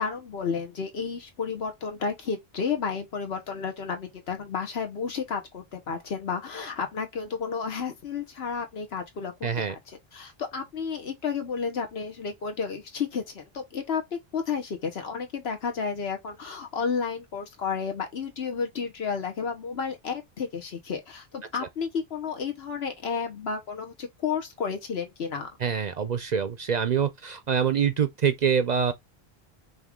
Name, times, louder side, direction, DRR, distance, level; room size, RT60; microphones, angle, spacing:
voice 1, 0.0-9.8 10.1-25.5, left 6 dB, 75° left, 1.3 m, -32 dB
voice 2, 9.4-9.7 25.6-28.9, right 7 dB, 50° right, 0.6 m, -25 dB
5.2 x 2.5 x 3.6 m
omnidirectional pair, 1.1 m